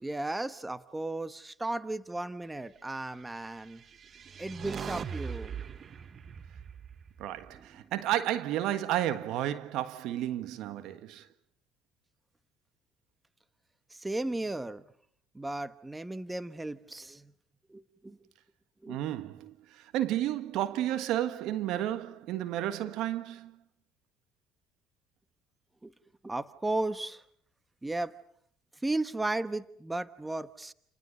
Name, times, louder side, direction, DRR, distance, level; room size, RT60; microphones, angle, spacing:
voice 1, 0.0-3.8 4.4-5.5 13.9-14.8 15.3-17.3 17.7-18.2 18.8-19.0 25.8-25.9 26.2-27.2 27.8-28.1 28.8-30.7, right 2 dB, 15° right, 1.2 m, -35 dB
sound 1, 3.6-8.0, right 7 dB, 45° right, 1.0 m, -41 dB
voice 2, 7.2-11.3 18.9-23.6, right 12 dB, 65° right, 1.6 m, -32 dB
30.0 x 29.0 x 5.4 m
hypercardioid pair, 70°, 0 cm